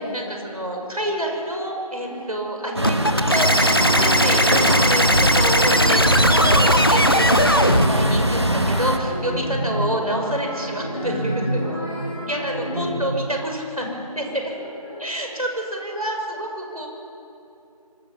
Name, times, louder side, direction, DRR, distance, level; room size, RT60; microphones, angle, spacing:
voice 1, 0.1-11.6 12.2-13.9 14.2-14.4 15.0-16.9, right 1 dB, 70° right, 1 dB, 5.9 m, -28 dB
voice 2, 1.9-2.3 5.7-6.0 9.0-9.4 10.9-13.1 14.5-15.2, equal, 5° left, -20 dB, 5.4 m, -37 dB
Truck, 2.7-9.0, equal, 45° right, 1.4 m, -21 dB
sound 1, 2.8-7.9, equal, 35° left, 0.9 m, -19 dB
sound 2, 5.1-12.9, equal, 15° right, 2.4 m, -30 dB
25.0 x 16.0 x 7.1 m, 2.7 s
figure-of-eight pair, 175°, 20 cm